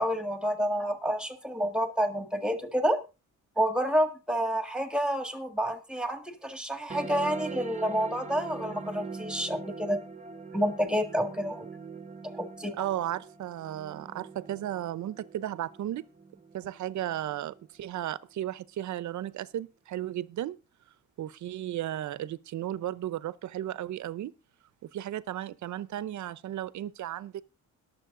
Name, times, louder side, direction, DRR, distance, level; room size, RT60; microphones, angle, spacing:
voice 1, 0.0-3.0 3.6-10.0 10.5-11.6 12.3-12.9, equal, 5° right, 1.7 m, -29 dB
sound 1, 6.9-17.9, right 5 dB, 25° right, 0.9 m, -43 dB
voice 2, 12.8-16.0 16.5-20.6 21.2-24.3 24.9-27.4, right 12 dB, 65° right, 0.8 m, -34 dB
22.0 x 7.5 x 3.8 m
cardioid pair, 165°, 31 cm